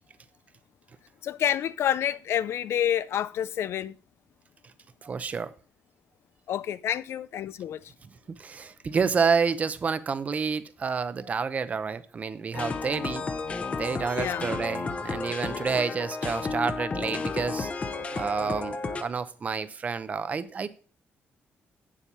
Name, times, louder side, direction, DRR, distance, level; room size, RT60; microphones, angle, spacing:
voice 1, 1.2-3.9 6.5-7.8 14.2-14.5, left 10 dB, 65° left, 0.4 m, -28 dB
voice 2, 5.0-5.5 8.4-13.2 13.8-17.7 18.1-20.7, right 5 dB, 30° right, 0.6 m, -29 dB
sound 1, 12.5-19.0, left 4 dB, 30° left, 0.8 m, -32 dB
8.5 x 7.4 x 5.4 m
wide cardioid pair, 165°, 5 cm